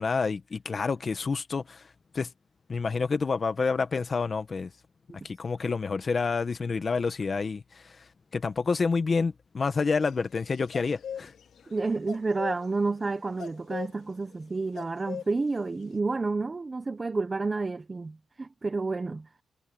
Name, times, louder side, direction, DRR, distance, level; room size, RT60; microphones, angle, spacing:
voice 1, 0.0-1.8 2.1-2.3 2.7-4.7 5.2-7.9 8.3-11.3, left 4 dB, 30° left, 1.1 m, -28 dB
sound 1, 10.1-11.8 12.0-15.9, left 8 dB, 65° left, 2.2 m, -40 dB
voice 2, 11.7-19.3, right 3 dB, 20° right, 0.9 m, -30 dB
wide cardioid pair, 155°, 0 cm